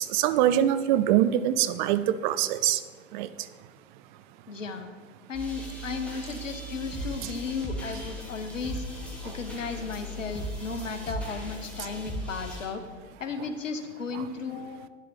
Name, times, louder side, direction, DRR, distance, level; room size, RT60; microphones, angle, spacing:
voice 1, 0.0-2.8 3.1-3.3 14.1-14.2, right 12 dB, 40° right, 13 dB, 0.4 m, -24 dB
voice 2, 4.5-4.9 5.3-8.8 9.2-12.8 13.2-14.8, left 4 dB, 80° left, 8 dB, 1.0 m, -35 dB
sound 1, 5.3-12.7, equal, 5° left, 2.4 m, -38 dB
9.4 x 7.5 x 3.5 m, 1.5 s
figure-of-eight pair, 95°, 38 cm